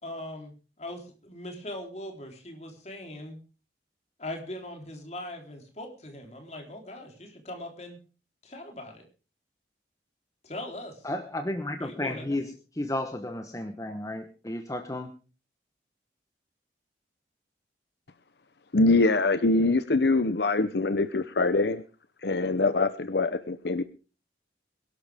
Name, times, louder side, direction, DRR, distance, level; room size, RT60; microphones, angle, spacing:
voice 1, 0.0-0.5 0.8-3.4 4.2-8.0 8.4-9.1 10.4-11.1 11.8-12.4, left 1 dB, 35° left, 3 dB, 3.7 m, -40 dB
voice 2, 11.0-12.5 12.8-15.1, left 1 dB, 20° left, 7 dB, 1.0 m, -32 dB
voice 3, 18.7-21.8 22.2-23.8, left 3 dB, 65° left, 12 dB, 0.8 m, -24 dB
22.0 x 12.0 x 3.5 m, 0.34 s
head